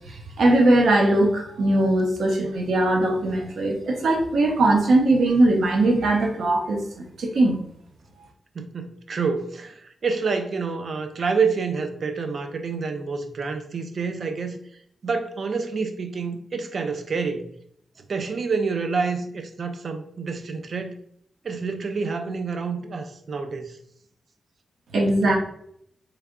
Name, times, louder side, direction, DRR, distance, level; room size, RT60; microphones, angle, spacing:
voice 1, 0.4-6.8 7.2-7.6 24.9-25.3, right 2 dB, 70° right, 0.7 m, -20 dB
voice 2, 8.6-9.7 10.0-14.6 15.0-17.4 18.1-20.9 21.4-23.7, right 5 dB, 45° right, 0.4 m, -28 dB
3.4 x 3.2 x 2.4 m
wide cardioid pair, 165°, 0 cm